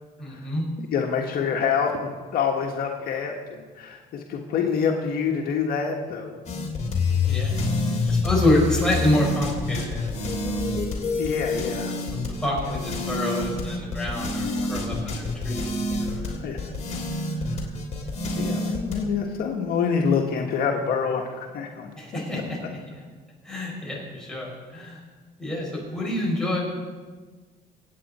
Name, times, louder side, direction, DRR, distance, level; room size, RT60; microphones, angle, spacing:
voice 1, 0.2-0.7 7.2-7.5 8.1-10.6 12.1-16.3 22.0-23.0 23.4-25.0 25.4-26.6, left 1 dB, 5° left, -4 dB, 5.6 m, -27 dB
voice 2, 0.8-6.3 11.1-12.0 12.7-12.8 16.4-16.6 18.4-21.9, left 6 dB, 65° left, 1 dB, 1.6 m, -26 dB
sound 1, 6.5-19.0, left 3 dB, 45° left, 3.2 m, -27 dB
25.0 x 9.0 x 4.3 m, 1.4 s
cardioid pair, 110°, 17 cm